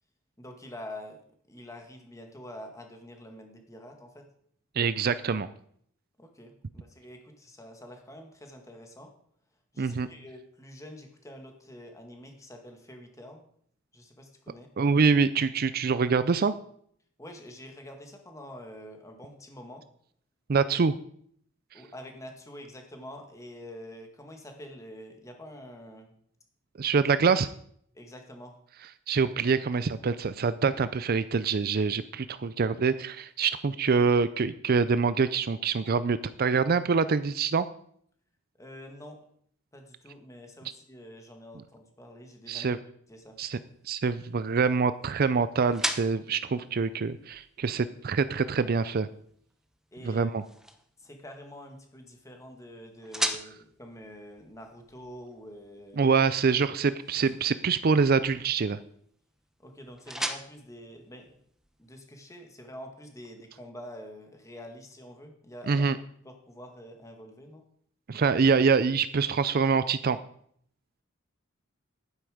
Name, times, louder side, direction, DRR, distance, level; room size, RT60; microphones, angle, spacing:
voice 1, 0.4-1.2 1.5-4.2 6.2-9.1 9.7-13.4 13.9-14.7 17.2-19.8 21.7-26.1 27.9-28.6 38.6-39.2 39.7-42.7 43.1-43.4 49.9-50.3 51.0-56.1 59.6-61.4 61.8-65.9 66.2-67.6, left 1 dB, 15° left, 4 dB, 1.9 m, -46 dB
voice 2, 4.8-5.5 9.8-10.1 14.8-16.6 20.5-20.9 26.8-27.5 29.1-37.7 42.5-42.8 43.4-43.6 43.8-49.1 50.0-50.4 56.0-58.8 65.7-66.0 68.1-70.2, right 5 dB, 50° right, 14 dB, 0.5 m, -25 dB
sound 1, 43.1-61.9, right 1 dB, 5° right, 0.9 m, -41 dB
11.0 x 9.8 x 5.0 m, 0.64 s
head